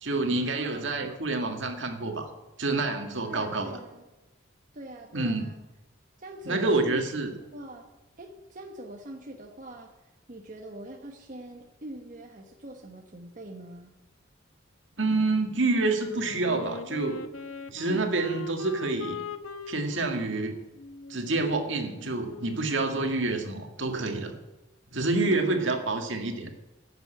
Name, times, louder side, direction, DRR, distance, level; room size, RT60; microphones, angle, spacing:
voice 1, 0.0-2.3 2.6-3.8 5.1-5.5 6.4-7.3 15.0-17.2 17.7-19.2 19.7-20.5 21.1-24.4 24.9-26.5, right 3 dB, 65° right, 4 dB, 1.9 m, -28 dB
voice 2, 0.5-1.1 3.2-4.0 4.7-5.6 6.2-7.2 7.5-7.9 8.2-14.0 17.9-18.1 25.3-25.9, right 1 dB, 40° right, 1 dB, 1.2 m, -43 dB
Wind instrument woodwind instrument, 16.0-22.7, left 3 dB, 90° left, 0.8 m, -41 dB
11.0 x 7.4 x 9.0 m, 1.0 s
head